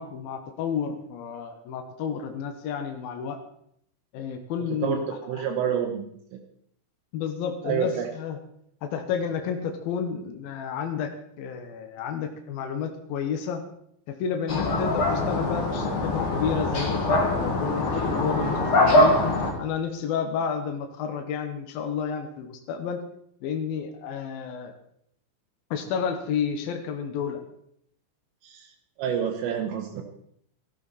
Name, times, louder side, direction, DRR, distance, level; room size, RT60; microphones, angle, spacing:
voice 1, 0.0-3.4 4.1-5.4 7.1-8.4 8.8-11.1 11.4-13.6 14.1-19.2 19.6-23.0 23.4-24.7 25.7-27.4, left 7 dB, 80° left, 5 dB, 2.1 m, -31 dB
voice 2, 4.8-6.1 6.3-6.4 7.6-8.1 28.4-30.0, right 8 dB, 80° right, 2 dB, 3.8 m, -28 dB
sound 1, 14.5-19.5, left 2 dB, 45° left, 1.7 m, -23 dB
14.5 x 13.5 x 4.2 m, 0.70 s
omnidirectional pair, 5.9 m